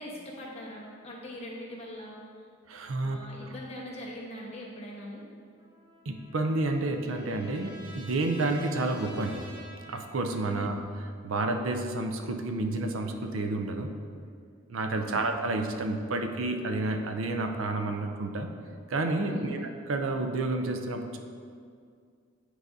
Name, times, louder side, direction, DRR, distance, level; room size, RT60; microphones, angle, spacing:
voice 1, 0.0-2.2 3.0-5.2 10.5-10.8 14.9-15.2 19.3-19.6, equal, 35° left, -4 dB, 1.1 m, -41 dB
voice 2, 2.7-3.2 6.1-9.5 9.9-10.8 11.2-13.9 14.7-18.5 18.9-21.2, right 2 dB, 90° right, 5 dB, 0.5 m, -30 dB
Trumpet, 5.6-10.7, equal, 25° right, 0.8 m, -50 dB
8.9 x 4.8 x 2.7 m, 2.2 s
head